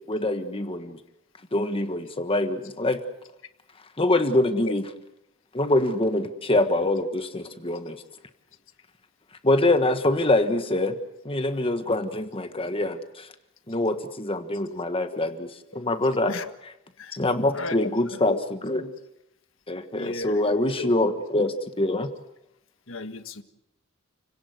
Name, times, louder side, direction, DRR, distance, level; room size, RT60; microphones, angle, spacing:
voice 1, 0.1-1.0 1.5-3.0 4.0-4.8 5.5-8.0 9.4-10.9 11.2-13.3 13.7-15.5 15.7-16.3 17.1-18.9 19.7-22.1, left 1 dB, 25° left, 8 dB, 1.5 m, -24 dB
voice 2, 14.9-15.2 15.7-15.8 16.3-16.5 17.0-17.2 17.5-18.4 19.9-20.9 22.9-23.4, left 3 dB, 75° left, 8 dB, 1.6 m, -35 dB
30.0 x 18.0 x 8.0 m, 0.88 s
head